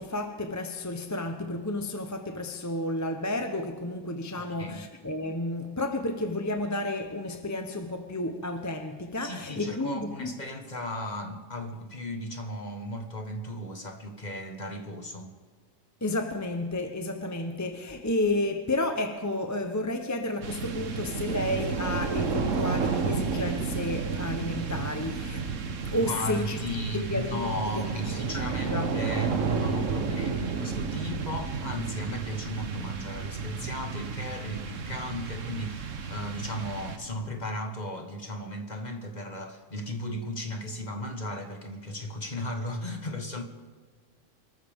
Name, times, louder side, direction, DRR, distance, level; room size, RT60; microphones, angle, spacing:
voice 1, 0.0-10.3 16.0-25.5 25.8-26.6 26.9-27.5 27.7-27.8 28.3-28.9, left 1 dB, 15° left, 0.8 m, -31 dB
voice 2, 4.3-4.8 9.2-15.4 26.0-43.4, left 1 dB, 35° left, 1.6 m, -35 dB
sound 1, 20.4-37.4, right 5 dB, 70° right, 1.5 m, -32 dB
25.5 x 14.0 x 3.6 m
omnidirectional pair, 1.3 m